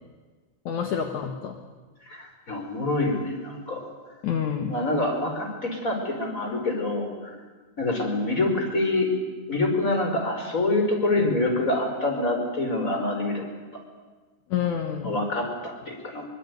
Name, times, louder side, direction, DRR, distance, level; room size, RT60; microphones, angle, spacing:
voice 1, 0.7-1.6 4.2-4.8 14.5-15.2, left 8 dB, 60° left, 4 dB, 2.2 m, -28 dB
voice 2, 2.1-3.8 4.7-7.1 7.8-9.1 9.5-13.5 15.0-16.3, left 2 dB, 15° left, 3 dB, 4.9 m, -26 dB
24.5 x 24.0 x 9.5 m, 1.4 s
omnidirectional pair, 5.3 m